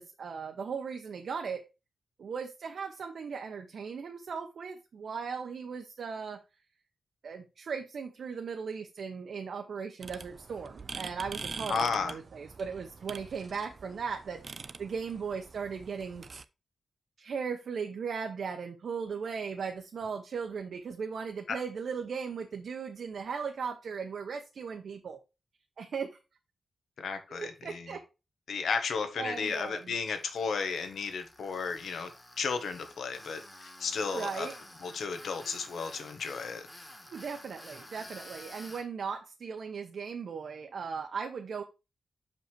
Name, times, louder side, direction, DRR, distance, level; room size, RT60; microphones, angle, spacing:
voice 1, 0.0-1.6 2.2-6.4 7.2-16.2 17.2-25.2 25.8-26.1 27.3-28.0 29.2-29.9 34.1-34.5 37.1-41.6, right 6 dB, 65° right, 0.8 m, -37 dB
sound 1, 10.0-16.4, right 4 dB, 40° right, 0.4 m, -44 dB
voice 2, 11.7-12.1 27.0-27.9 28.5-32.1 32.4-34.5 34.8-36.7, left 5 dB, 80° left, 1.4 m, -33 dB
Tools, 29.3-38.8, left 1 dB, 10° left, 1.5 m, -51 dB
6.4 x 5.4 x 4.5 m
wide cardioid pair, 175°, 0 cm